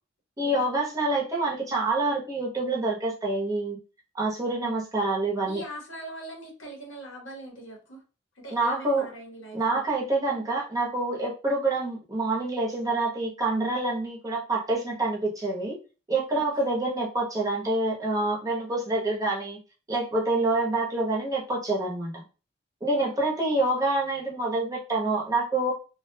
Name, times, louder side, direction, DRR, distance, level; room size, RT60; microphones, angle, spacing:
voice 1, 0.4-3.8 4.1-5.6 8.5-9.1 9.5-15.8 16.1-19.6 19.9-22.2 22.8-25.7, right 2 dB, 20° right, -3 dB, 0.7 m, -27 dB
voice 2, 5.4-8.0 8.4-9.8 16.3-16.7 22.9-23.1, right 1 dB, 80° left, 0 dB, 0.9 m, -42 dB
2.3 x 2.1 x 2.6 m, 0.34 s
head